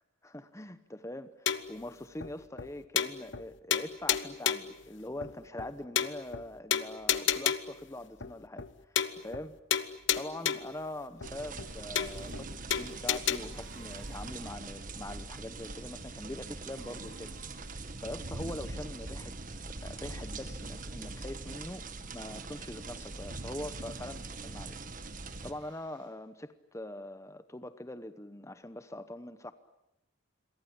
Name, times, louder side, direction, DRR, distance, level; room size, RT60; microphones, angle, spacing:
voice 1, 0.2-9.6 9.9-19.4 19.6-25.1 25.4-29.5, left 1 dB, 15° left, 12 dB, 0.9 m, -43 dB
sound 1, 1.5-1.8 2.2-2.3 2.6-2.7 3.0-3.4 3.7-4.8 5.2-5.3 5.6-5.7 6.0-6.4 6.7-7.8 8.2-8.3 8.6-8.7 9.0-9.4 9.7-10.8 11.2-11.3 11.6-11.7 12.0-12.4 12.7-13.4, left 9 dB, 60° left, 1.1 m, -30 dB
sound 2, 11.2-25.5, right 3 dB, 40° right, 1.8 m, -42 dB
sound 3, 13.1-14.5 16.3-17.7 23.5-24.3 25.1-26.1, right 3 dB, 60° right, 5.4 m, -57 dB
27.5 x 23.0 x 8.7 m, 0.83 s
head